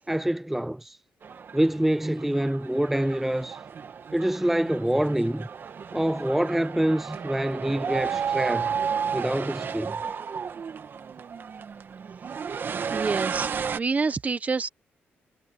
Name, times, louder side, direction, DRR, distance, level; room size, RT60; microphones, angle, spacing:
voice 1, 0.1-1.0 1.5-3.6 4.1-5.5 5.9-8.8 9.1-10.0, right 1 dB, 5° right, 0.5 m, -26 dB
sound 1, 1.2-13.8, right 6 dB, 55° right, 1.6 m, -33 dB
voice 2, 12.9-13.5 13.7-14.7, right 4 dB, 35° right, 1.4 m, -27 dB
cardioid pair, 85°, 4 cm